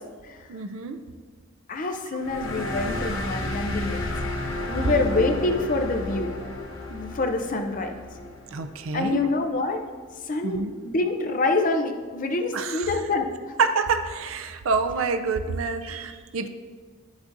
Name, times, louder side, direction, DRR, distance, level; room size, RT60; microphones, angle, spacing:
voice 1, 0.5-1.0 4.8-5.1 8.5-9.3 10.4-10.7 12.5-13.0 13.6-16.5, right 4 dB, 70° right, 8 dB, 0.5 m, -27 dB
voice 2, 1.7-4.1 4.7-6.3 6.9-7.9 8.9-9.8 10.2-13.5, left 2 dB, 40° left, 5 dB, 0.5 m, -26 dB
sound 1, 2.2-9.3, left 2 dB, 65° left, 1.0 m, -32 dB
9.8 x 6.2 x 2.6 m, 1.5 s
head